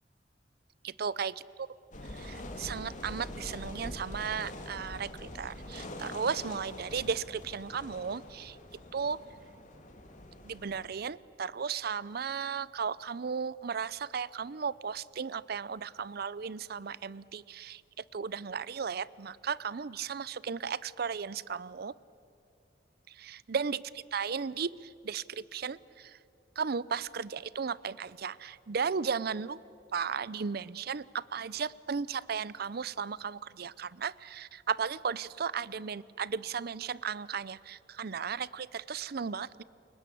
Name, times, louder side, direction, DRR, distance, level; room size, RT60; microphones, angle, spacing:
voice 1, 0.8-1.7 2.1-8.6 8.9-9.2 10.4-17.8 18.1-21.9 23.2-26.2 26.6-29.6 29.9-39.6, right 6 dB, 60° right, 20 dB, 0.6 m, -35 dB
sound 1, 1.9-10.9, left 1 dB, 45° left, 2.7 m, -44 dB
29.0 x 21.5 x 8.4 m, 2.5 s
head